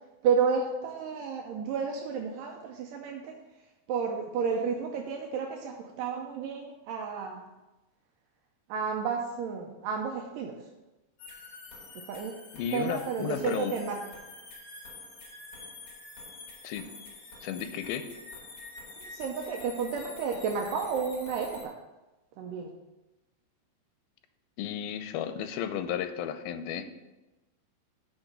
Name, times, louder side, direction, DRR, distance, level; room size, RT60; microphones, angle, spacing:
voice 1, 0.2-3.4 3.9-7.5 8.7-10.7 12.1-12.3 12.7-14.0 19.0-21.7 22.4-22.7, right 6 dB, 80° right, 1 dB, 2.1 m, -31 dB
sound 1, 11.2-21.6, left 3 dB, 55° left, 3.2 m, -47 dB
voice 2, 12.5-13.7 16.6-16.9 17.4-18.1 24.6-26.9, left 9 dB, 90° left, 9 dB, 2.5 m, -33 dB
6.1 x 6.0 x 6.7 m, 1.1 s
omnidirectional pair, 4.2 m